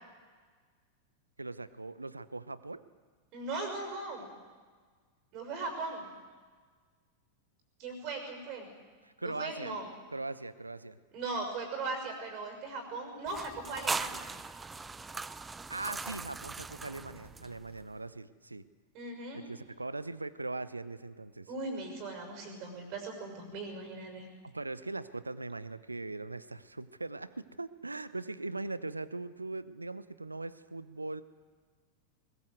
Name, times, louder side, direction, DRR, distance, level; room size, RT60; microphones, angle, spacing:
voice 1, 1.4-2.8 9.0-9.7 10.1-11.0 15.7-18.6 19.3-21.5 24.4-31.2, right 2 dB, 80° right, 16 dB, 0.8 m, -40 dB
voice 2, 3.3-4.3 5.3-6.1 7.8-8.7 9.2-9.9 11.1-14.3 18.9-19.4 21.5-24.3, right 3 dB, 40° right, 5 dB, 6.3 m, -38 dB
sound 1, 13.3-17.8, right 4 dB, 10° right, 0.6 m, -39 dB
21.0 x 20.5 x 8.1 m, 1.5 s
figure-of-eight pair, 90°, 0 cm